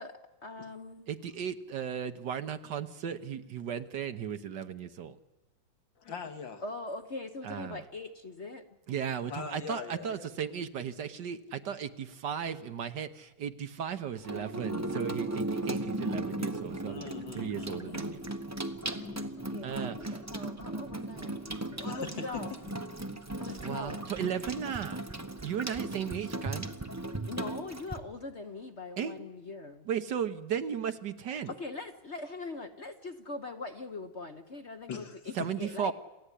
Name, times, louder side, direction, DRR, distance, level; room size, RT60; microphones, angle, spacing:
voice 1, 0.0-1.1 6.6-8.6 17.9-18.0 19.5-22.5 23.4-24.0 27.3-29.9 31.5-35.9, left 3 dB, 40° left, 6 dB, 1.1 m, -42 dB
voice 2, 1.1-5.2 7.4-7.8 8.9-18.2 19.6-20.2 23.6-25.0 25.4-26.7 29.0-29.1 29.8-31.5 35.3-35.9, right 8 dB, 60° right, 10 dB, 1.5 m, -35 dB
voice 3, 6.0-6.6 9.3-10.3 16.9-18.7 19.0-19.4 21.8-22.8 31.5-31.6 34.9-35.5, left 6 dB, 65° left, 6 dB, 2.6 m, -42 dB
Water tap faucet / Sink (filling or washing), 14.2-28.0, right 1 dB, 10° right, 0.8 m, -37 dB
28.0 x 15.5 x 9.9 m, 1.1 s
omnidirectional pair, 2.2 m